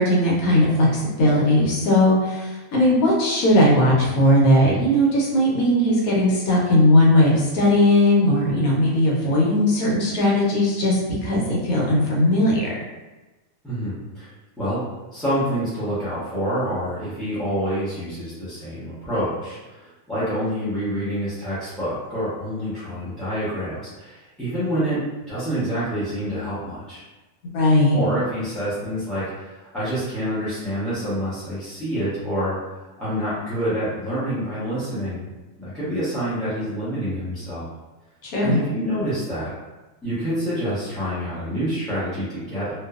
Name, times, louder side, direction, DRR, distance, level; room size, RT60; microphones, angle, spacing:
voice 1, 0.0-12.7 27.5-28.0 38.2-38.6, left 1 dB, 85° left, -3 dB, 1.2 m, -18 dB
voice 2, 13.6-14.3 14.6-14.8 15.1-25.0 25.3-27.0 27.9-32.6 33.0-35.2 35.6-37.6 38.4-39.5 40.0-42.7, equal, ahead, -14 dB, 0.5 m, -27 dB
2.9 x 2.0 x 2.3 m, 1.1 s
omnidirectional pair, 1.5 m